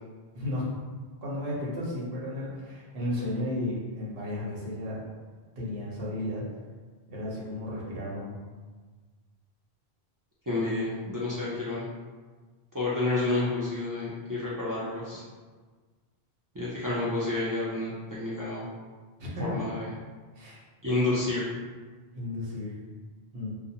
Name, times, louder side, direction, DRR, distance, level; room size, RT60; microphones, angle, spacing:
voice 1, 0.3-0.7 1.2-5.0 5.6-6.4 7.1-8.3 19.2-19.3 20.4-20.6 22.1-22.8 23.3-23.5, left 1 dB, 65° right, -6 dB, 1.0 m, -33 dB
voice 2, 10.5-11.9 12.7-15.2 16.5-18.7 19.4-19.9 20.8-21.4, left 2 dB, 35° right, -9 dB, 0.3 m, -29 dB
2.4 x 2.1 x 2.7 m, 1.4 s
omnidirectional pair, 1.0 m